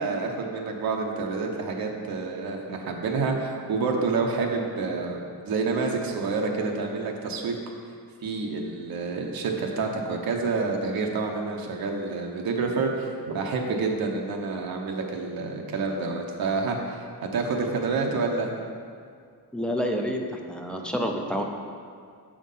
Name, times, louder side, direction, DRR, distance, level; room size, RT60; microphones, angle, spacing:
voice 1, 0.0-7.5 8.2-17.0 17.3-18.7, right 4 dB, 60° right, 1 dB, 1.0 m, -28 dB
voice 2, 19.5-21.4, equal, ahead, 1 dB, 0.5 m, -28 dB
6.3 x 6.2 x 5.5 m, 2.2 s
wide cardioid pair, 170°, 40 cm